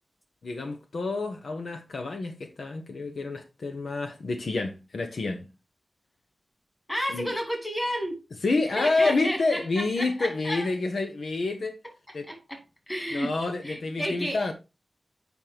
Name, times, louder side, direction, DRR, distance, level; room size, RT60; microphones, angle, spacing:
voice 1, 0.4-5.5 7.1-7.3 8.4-11.7 12.1-12.2 13.1-14.5, left 3 dB, 75° left, 1.0 m, -28 dB
voice 2, 6.9-8.2 8.6-10.7 12.3-13.3 13.6-14.4, equal, 20° left, 2.7 m, -32 dB
8.2 x 5.3 x 2.9 m
wide cardioid pair, 115°, 0 cm